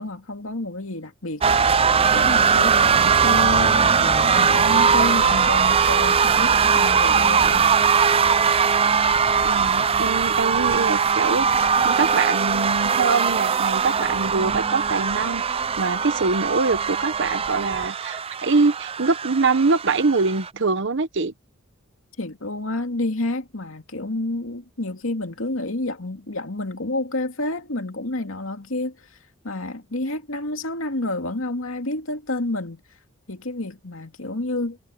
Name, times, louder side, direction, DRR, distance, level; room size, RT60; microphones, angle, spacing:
voice 1, 0.0-7.8 22.2-29.0 29.4-32.8 33.3-34.8, left 2 dB, 85° left, 2.4 m, -29 dB
sound 1, 1.4-20.5, right 6 dB, 30° right, 0.5 m, -20 dB
voice 2, 9.4-21.3, right 4 dB, 65° right, 1.0 m, -24 dB
head